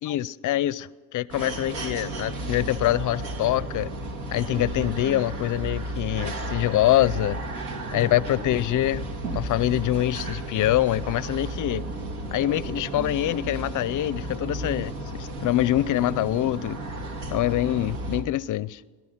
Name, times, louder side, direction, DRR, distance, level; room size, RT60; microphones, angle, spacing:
voice 1, 0.0-3.9 4.3-7.4 7.9-11.8 12.3-16.8 17.3-18.8, left 14 dB, 40° left, 0.5 m, -25 dB
sound 1, 1.3-18.2, right 2 dB, 80° right, 2.2 m, -33 dB
18.5 x 11.0 x 5.7 m
supercardioid pair, 100°, 49 cm